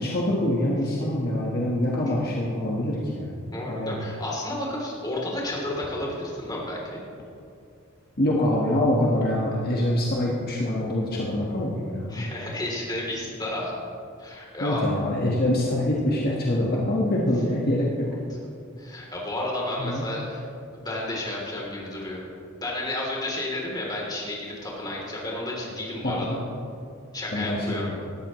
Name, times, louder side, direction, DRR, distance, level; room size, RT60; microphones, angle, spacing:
voice 1, 0.0-3.3 3.7-4.0 8.2-12.3 14.6-18.1 19.8-20.1 26.0-26.4 27.3-28.0, left 1 dB, 50° left, -4 dB, 1.5 m, -25 dB
voice 2, 3.5-7.0 12.1-13.8 14.2-14.9 18.8-20.4 20.7-22.2 22.6-26.4 27.1-27.9, left 1 dB, 20° left, -4 dB, 3.3 m, -31 dB
18.5 x 13.0 x 3.2 m, 2.4 s
head